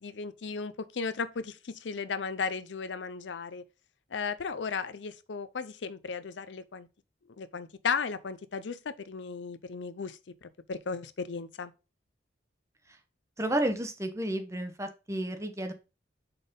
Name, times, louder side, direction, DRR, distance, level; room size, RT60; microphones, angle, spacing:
voice 1, 0.0-3.6 4.1-6.9 7.4-11.7, left 5 dB, 75° left, 0.6 m, -35 dB
voice 2, 13.4-15.7, right 1 dB, 15° right, 0.9 m, -31 dB
5.6 x 4.2 x 5.2 m
head